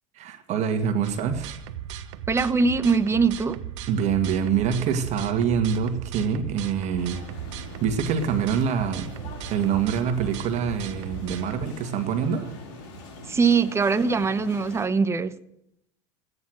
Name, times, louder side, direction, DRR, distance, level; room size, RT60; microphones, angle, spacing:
voice 1, 0.2-1.6 3.9-7.2 7.8-9.1 9.5-12.5, right 7 dB, 45° right, 6 dB, 1.9 m, -25 dB
sound 1, 1.0-11.7, right 9 dB, 80° right, 1.1 m, -38 dB
voice 2, 2.3-3.6 13.3-15.3, right 4 dB, 15° right, 11 dB, 0.9 m, -22 dB
sound 2, 7.0-14.9, left 2 dB, 75° left, 4.3 m, -42 dB
15.0 x 9.7 x 7.8 m, 0.75 s
supercardioid pair, 110°, 16 cm